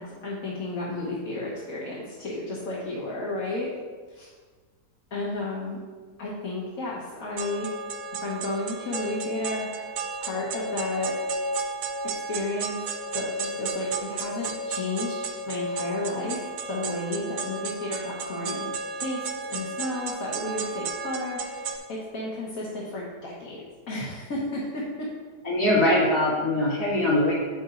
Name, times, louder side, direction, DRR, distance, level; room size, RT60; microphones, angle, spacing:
voice 1, 0.0-3.7 4.1-4.3 5.1-5.8 6.2-7.7 8.2-9.8 10.2-11.1 12.1-12.8 13.1-18.7 18.9-19.2 19.5-24.8 25.7-25.8, left 2 dB, 55° left, -5 dB, 1.5 m, -32 dB
sound 1, 7.4-21.8, right 3 dB, 80° right, 1.4 m, -33 dB
voice 2, 25.4-27.3, left 1 dB, 80° left, -8 dB, 3.2 m, -22 dB
9.0 x 6.9 x 2.5 m, 1.5 s
omnidirectional pair, 1.8 m